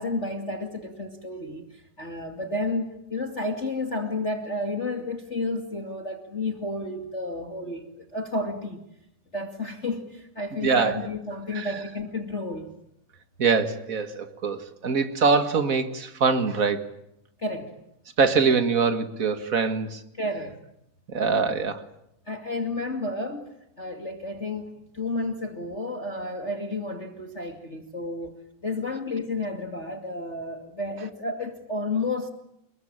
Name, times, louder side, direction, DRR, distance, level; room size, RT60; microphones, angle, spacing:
voice 1, 0.0-8.8 9.3-12.7 17.4-17.7 20.2-20.5 22.3-23.4 23.8-28.4 28.6-32.3, left 2 dB, 25° left, 5 dB, 2.4 m, -31 dB
voice 2, 10.6-11.1 11.5-11.7 13.4-16.9 18.2-20.0 21.1-21.8, right 5 dB, 35° right, 9 dB, 1.8 m, -23 dB
29.5 x 21.5 x 8.9 m, 0.80 s
omnidirectional pair, 3.5 m